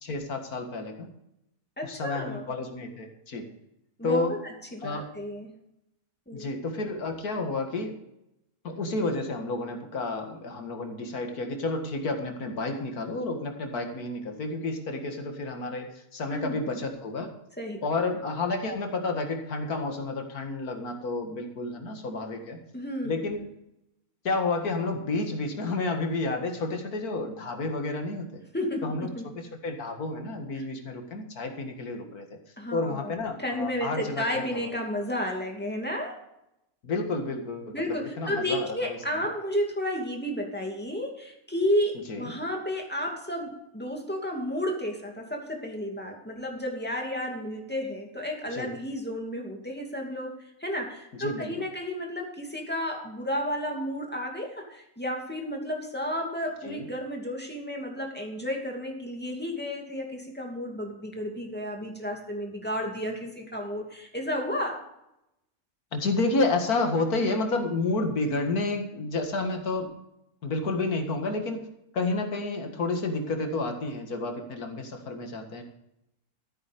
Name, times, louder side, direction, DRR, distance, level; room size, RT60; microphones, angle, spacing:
voice 1, 0.0-1.1 1.8-3.5 4.0-4.4 4.8-5.1 6.3-8.0 8.6-17.3 17.8-22.6 23.0-23.4 24.2-28.4 28.8-32.3 32.7-34.7 36.8-39.0 42.1-42.3 48.5-48.7 51.1-51.5 56.6-56.9 65.9-70.0 70.4-71.7 71.9-75.6, left 3 dB, 80° left, 4 dB, 2.3 m, -30 dB
voice 2, 1.8-2.5 4.0-5.5 6.3-6.5 16.3-16.8 17.6-17.8 22.7-23.1 28.5-29.3 30.6-30.7 32.6-33.1 33.4-36.2 37.7-64.8, equal, 5° left, 1 dB, 2.5 m, -32 dB
14.0 x 8.9 x 5.2 m, 0.83 s
omnidirectional pair, 1.6 m